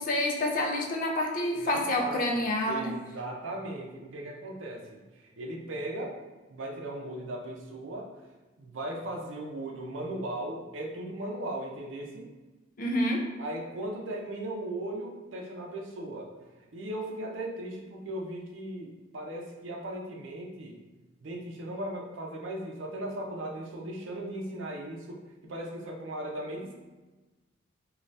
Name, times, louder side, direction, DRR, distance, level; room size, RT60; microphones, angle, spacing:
voice 1, 0.0-2.9 12.8-13.3, left 1 dB, 45° left, 1 dB, 0.4 m, -28 dB
voice 2, 1.5-6.2 6.5-8.1 8.6-12.3 13.4-16.3 16.7-20.8 21.2-25.2 25.4-26.7, right 1 dB, 80° right, 0 dB, 0.5 m, -37 dB
2.6 x 2.3 x 3.2 m, 1.2 s
head